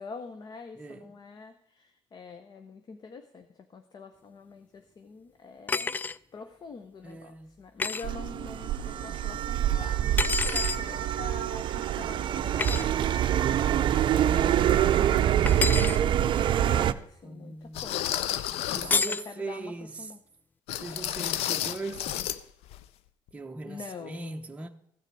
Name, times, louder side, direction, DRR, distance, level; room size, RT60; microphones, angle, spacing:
voice 1, 0.0-6.0 6.3-18.4 18.7-19.7 20.0-20.2 23.6-24.4, left 5 dB, 40° left, 0.8 m, -45 dB
voice 2, 0.8-1.1 7.0-7.5 9.0-9.2 17.2-17.9 18.7-20.1 20.8-22.2 23.3-24.7, right 3 dB, 10° right, 0.8 m, -40 dB
sound 1, 5.7-6.2 7.8-8.0 10.2-10.8 12.6-12.8 15.5-16.0 18.9-19.3, left 4 dB, 15° left, 0.3 m, -28 dB
sound 2, 8.0-16.9, right 11 dB, 50° right, 0.5 m, -25 dB
sound 3, 15.8-15.9 16.6-16.7 17.7-19.0 20.7-22.4 22.7-22.8 23.3-23.4, left 12 dB, 70° left, 0.6 m, -32 dB
15.5 x 6.6 x 4.6 m
supercardioid pair, 85°, 11 cm